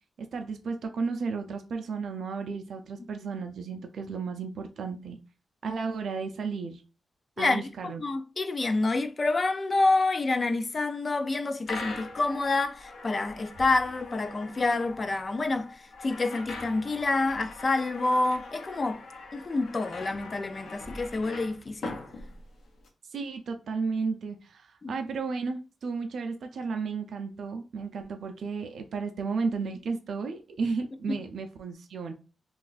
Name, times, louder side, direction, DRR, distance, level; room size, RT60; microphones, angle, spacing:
voice 1, 0.2-5.2 5.6-6.8 7.4-8.0 23.1-32.1, right 4 dB, 65° right, 0.4 m, -33 dB
voice 2, 7.4-15.7 16.0-19.0 19.3-22.0 24.8-24.9 31.1-31.2, left 3 dB, 30° left, 0.3 m, -28 dB
sound 1, 11.6-22.9, left 3 dB, 65° left, 0.7 m, -42 dB
2.4 x 2.3 x 3.9 m
wide cardioid pair, 145°, 0 cm